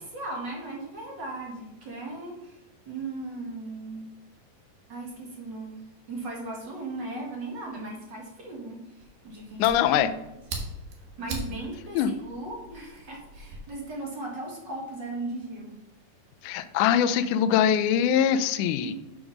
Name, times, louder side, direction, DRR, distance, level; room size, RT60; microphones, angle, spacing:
voice 1, 0.1-2.6 2.9-4.1 4.9-10.5 11.2-15.8 18.8-18.9, right 2 dB, 40° right, -2 dB, 1.9 m, -37 dB
Fire, 9.0-13.6, right 2 dB, 75° right, 3.1 m, -40 dB
voice 2, 9.6-10.1 12.0-12.1 16.4-18.9, left 9 dB, 80° left, 10 dB, 1.9 m, -22 dB
7.0 x 4.9 x 6.0 m, 0.96 s
omnidirectional pair, 4.0 m